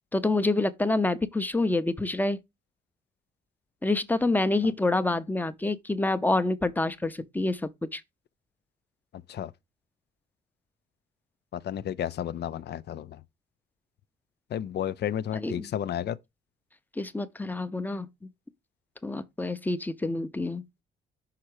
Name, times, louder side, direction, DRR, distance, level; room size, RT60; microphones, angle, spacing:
voice 1, 0.1-2.4 3.8-8.0 15.3-15.7 17.0-18.3 19.0-20.6, left 2 dB, 10° left, 0.7 m, -27 dB
voice 2, 11.5-13.2 14.5-16.2, left 10 dB, 55° left, 0.5 m, -32 dB
5.8 x 4.3 x 4.8 m
cardioid pair, 90°, 20 cm